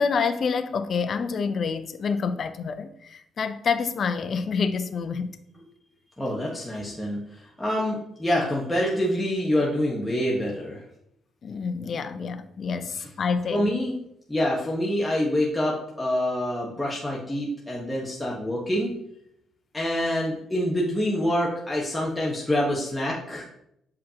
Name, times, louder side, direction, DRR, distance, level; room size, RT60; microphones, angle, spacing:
voice 1, 0.0-5.4 11.4-13.7, left 5 dB, 50° left, 0.6 m, -27 dB
voice 2, 6.2-10.8 12.9-13.1 13.5-13.9 14.3-18.9 19.7-23.4, left 1 dB, 10° left, 1.2 m, -26 dB
7.2 x 5.1 x 2.9 m
cardioid pair, 90°, 0 cm